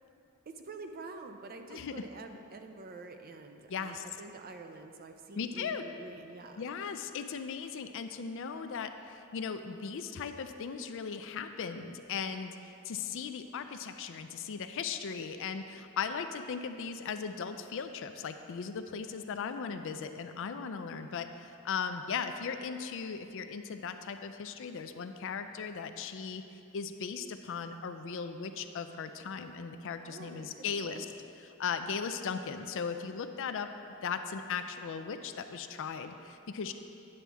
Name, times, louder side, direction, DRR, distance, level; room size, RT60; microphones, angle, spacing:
voice 1, 0.5-6.7 19.6-19.8 30.0-31.2, right 3 dB, 45° right, 6 dB, 0.5 m, -47 dB
voice 2, 1.7-2.0 3.7-4.0 5.4-5.8 6.6-26.4 26.7-31.1 31.4-33.7 34.0-36.7, left 6 dB, 65° left, 8 dB, 0.4 m, -38 dB
9.7 x 7.3 x 3.4 m, 2.7 s
head